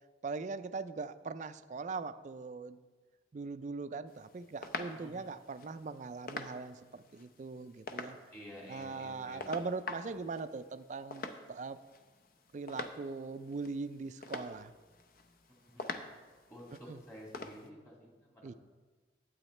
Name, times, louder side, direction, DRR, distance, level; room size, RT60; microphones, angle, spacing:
voice 1, 0.2-2.8 3.3-8.2 8.7-11.8 12.5-14.7 16.9-17.0 18.4-18.5, right 4 dB, 40° right, 12 dB, 0.3 m, -41 dB
sound 1, 4.1-17.7, left 3 dB, 50° left, 0.6 m, -47 dB
voice 2, 4.9-5.4 8.3-9.5 15.5-15.8 16.5-18.5, equal, 15° left, -3 dB, 2.2 m, -51 dB
12.0 x 8.6 x 3.2 m, 1.3 s
head